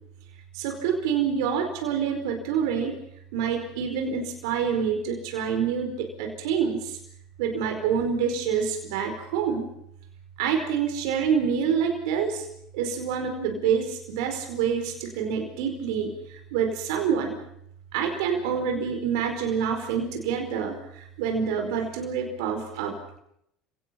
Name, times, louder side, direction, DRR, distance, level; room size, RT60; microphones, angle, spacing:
voice 1, 0.5-3.0 3.3-7.0 7.4-9.7 10.4-12.5 12.7-17.3 17.9-23.2, right 7 dB, 75° right, 4 dB, 4.9 m, -27 dB
30.0 x 18.0 x 5.9 m, 0.72 s
hypercardioid pair, 80°, 3 cm